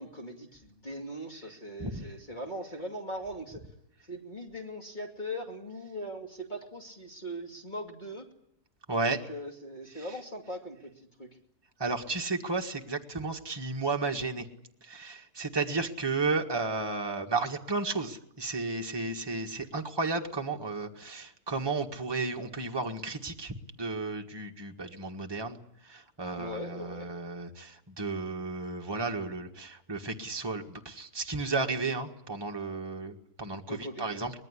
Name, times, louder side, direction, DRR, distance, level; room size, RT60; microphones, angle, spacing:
voice 1, 0.0-3.6 4.1-8.3 9.1-10.9 11.2-11.3 26.3-27.1 33.7-34.3, equal, 30° left, 2 dB, 2.8 m, -40 dB
voice 2, 8.9-9.2 10.0-10.1 11.8-14.5 14.8-25.6 25.8-34.3, right 3 dB, 15° right, 3 dB, 1.7 m, -33 dB
24.5 x 20.0 x 9.9 m, 0.74 s
omnidirectional pair, 1.5 m